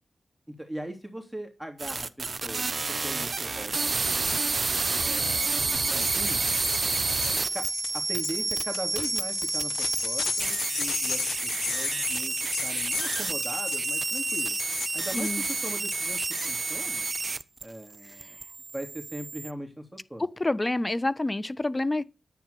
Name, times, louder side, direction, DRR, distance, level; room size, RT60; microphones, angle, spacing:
voice 1, 0.5-3.8 5.0-6.4 7.2-7.6 8.1-12.3 12.6-14.6 14.9-17.0 17.6-18.3 18.7-20.2, right 1 dB, 5° right, 3.2 m, -40 dB
sound 1, 1.8-17.6 17.9-19.5, right 3 dB, 50° right, 1.0 m, -29 dB
sound 2, 5.6-16.7, left 6 dB, 85° left, 1.2 m, -35 dB
voice 2, 20.4-22.0, left 2 dB, 30° left, 1.2 m, -27 dB
10.5 x 9.2 x 6.9 m
cardioid pair, 40°, 0 cm